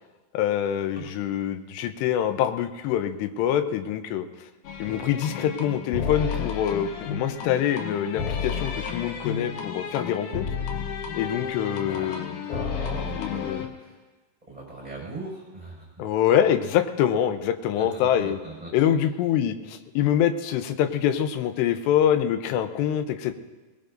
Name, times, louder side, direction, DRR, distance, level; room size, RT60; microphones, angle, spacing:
voice 1, 0.3-4.3 4.8-10.5 11.1-12.4 13.2-13.6 16.0-18.4 18.7-23.3, left 10 dB, 80° left, 9 dB, 2.9 m, -25 dB
sound 1, 4.6-13.7, left 6 dB, 65° left, 2.2 m, -32 dB
voice 2, 12.4-14.0 14.5-15.9 17.8-18.8, right 2 dB, 10° right, -4 dB, 5.5 m, -39 dB
21.5 x 21.0 x 2.6 m, 1.2 s
omnidirectional pair, 4.9 m